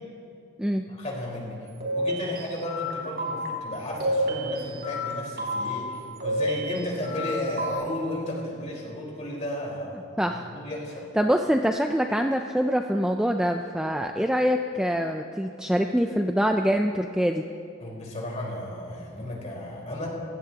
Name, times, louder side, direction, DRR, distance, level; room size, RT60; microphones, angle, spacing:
voice 1, 0.9-10.0 10.3-11.1 17.8-20.1, left 1 dB, 35° left, -4 dB, 4.3 m, -34 dB
sound 1, 1.8-2.9 3.2-3.5 4.0-5.1 5.4-5.7 6.2-7.3 7.6-7.7, equal, 45° right, 3.4 m, -28 dB
voice 2, 10.2-10.5 11.2-17.4, equal, 5° right, 4 dB, 0.4 m, -24 dB
27.0 x 16.5 x 2.9 m, 2.4 s
head